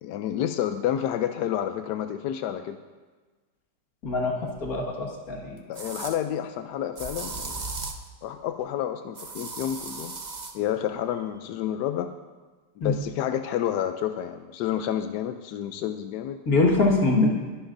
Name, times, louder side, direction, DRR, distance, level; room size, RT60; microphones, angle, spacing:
voice 1, 0.0-2.8 5.7-7.7 8.2-10.1 10.5-12.1 12.8-16.4, left 10 dB, 75° left, 7 dB, 1.0 m, -29 dB
voice 2, 4.0-5.6 12.8-12.9 16.5-17.3, left 3 dB, 45° left, -1 dB, 2.1 m, -23 dB
sound 1, 4.6-4.7 5.7-6.2 7.0-8.1 9.2-10.6, right 3 dB, 65° right, 0.4 m, -36 dB
22.0 x 11.5 x 2.6 m, 1.4 s
omnidirectional pair, 2.2 m